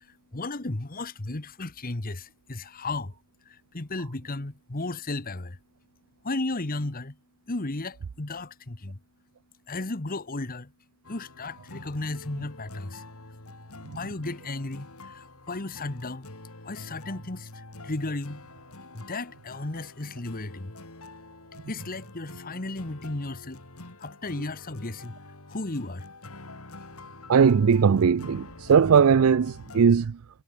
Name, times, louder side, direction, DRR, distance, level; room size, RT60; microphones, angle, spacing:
voice 1, 0.0-3.1 3.4-5.6 6.2-7.2 7.5-9.0 9.7-10.7 11.1-13.4 13.9-16.3 16.6-18.5 18.9-20.7 21.7-23.6 24.0-25.2 25.5-26.1, left 2 dB, 40° left, 1.4 m, -34 dB
sound 1, 11.0-29.9, left 2 dB, 80° left, 3.9 m, -46 dB
voice 2, 27.3-30.2, right 6 dB, 70° right, 0.4 m, -19 dB
head